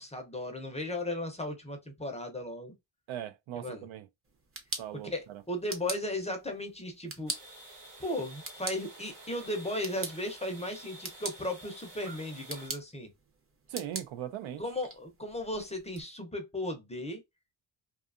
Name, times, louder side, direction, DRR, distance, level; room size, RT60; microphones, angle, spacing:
voice 1, 0.0-2.7 3.5-3.9 5.0-7.3 8.0-13.1 14.6-17.2, left 1 dB, 15° left, 0.5 m, -36 dB
voice 2, 3.1-4.1 4.8-5.4 13.7-14.6, right 11 dB, 80° right, 0.6 m, -39 dB
sound 1, 4.2-16.0, right 3 dB, 30° right, 0.6 m, -44 dB
sound 2, 7.3-12.7, right 1 dB, 45° right, 1.2 m, -50 dB
2.7 x 2.4 x 2.3 m
wide cardioid pair, 140°, 46 cm